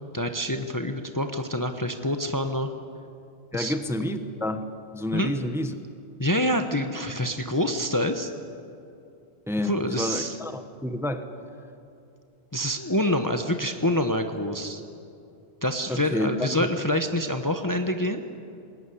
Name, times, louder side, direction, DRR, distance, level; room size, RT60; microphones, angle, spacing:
voice 1, 0.1-2.7 3.5-3.8 5.1-5.3 6.2-8.3 9.6-10.4 12.5-14.8 15.6-18.2, left 1 dB, 20° left, 6 dB, 1.0 m, -26 dB
voice 2, 3.5-4.6 4.9-5.7 9.5-11.2 15.9-16.7, left 1 dB, ahead, 8 dB, 1.0 m, -29 dB
21.0 x 18.0 x 9.9 m, 2.6 s
omnidirectional pair, 1.1 m